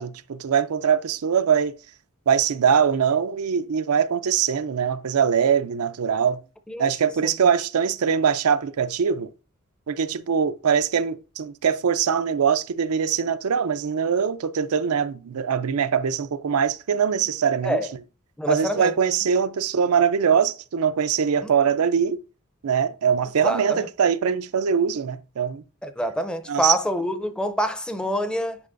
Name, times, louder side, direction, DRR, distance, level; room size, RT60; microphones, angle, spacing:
voice 1, 0.0-1.7 2.3-6.4 6.8-9.3 9.9-17.8 18.5-22.2 22.6-25.6 26.5-26.7, right 7 dB, 85° right, 0.5 m, -22 dB
voice 2, 18.4-18.9 21.4-21.5 23.4-23.9 25.8-28.6, equal, 5° left, 0.5 m, -26 dB
9.9 x 4.6 x 2.5 m
head